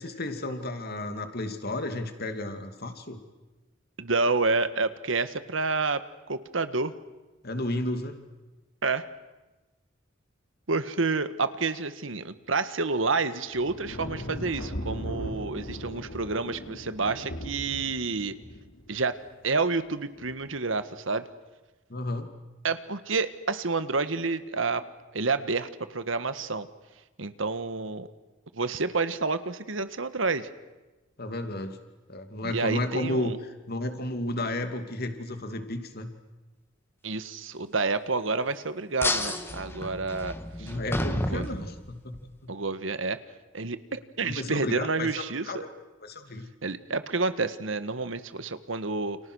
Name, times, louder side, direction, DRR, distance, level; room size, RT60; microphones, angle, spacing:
voice 1, 0.0-3.2 7.4-8.2 21.9-22.3 31.2-31.8 32.1-33.3 33.7-36.1 40.6-42.3 44.2-45.1 45.4-45.7 46.0-46.5, left 1 dB, 55° left, 7 dB, 2.7 m, -32 dB
voice 2, 4.0-6.0 6.3-6.9 8.8-9.1 10.7-18.3 18.9-19.2 19.4-21.2 22.6-24.8 25.1-26.7 27.2-28.1 28.5-30.5 32.4-33.4 37.0-40.7 41.1-41.4 42.5-43.2 43.5-45.6 46.6-49.2, right 3 dB, 85° right, 12 dB, 1.5 m, -29 dB
sound 1, 13.5-19.0 20.2-20.5, equal, 90° left, 4.0 m, -38 dB
sound 2, 39.0-42.2, left 1 dB, 10° left, 1.7 m, -31 dB
29.5 x 29.5 x 6.4 m, 1.1 s
head